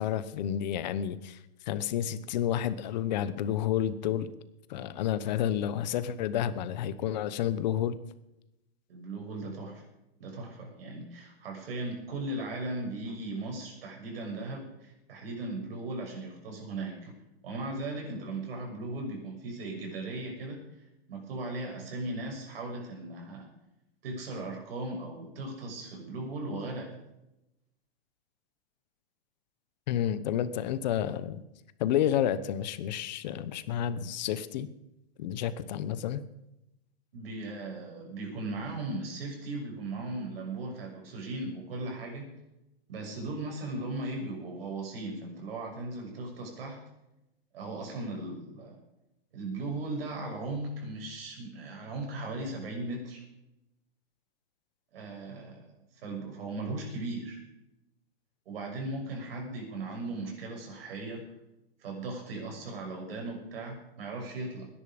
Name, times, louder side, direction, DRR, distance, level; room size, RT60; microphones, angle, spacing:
voice 1, 0.0-1.4 1.7-4.3 4.7-8.0 29.9-31.4 31.8-34.7 35.2-36.2, left 10 dB, 45° left, 14 dB, 1.0 m, -30 dB
voice 2, 8.9-9.8 10.2-17.1 17.4-20.6 21.1-23.5 24.0-26.9 37.1-42.3 42.9-46.8 47.5-48.8 49.3-53.2 54.9-55.7 55.9-57.4 58.5-61.2 61.8-64.7, right 2 dB, 65° right, 1 dB, 6.5 m, -37 dB
20.0 x 10.5 x 5.2 m, 0.91 s
supercardioid pair, 170°, 31 cm